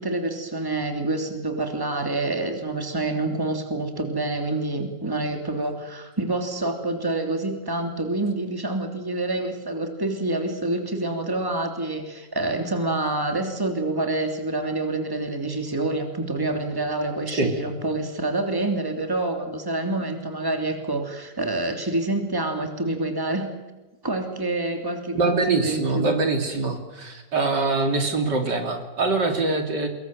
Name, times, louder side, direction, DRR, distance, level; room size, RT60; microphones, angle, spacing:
voice 1, 0.0-23.5 24.0-26.1, right 2 dB, 10° right, 4 dB, 3.1 m, -27 dB
voice 2, 25.1-29.9, right 3 dB, 70° right, 5 dB, 3.5 m, -24 dB
24.5 x 22.5 x 7.8 m, 1.1 s
omnidirectional pair, 1.9 m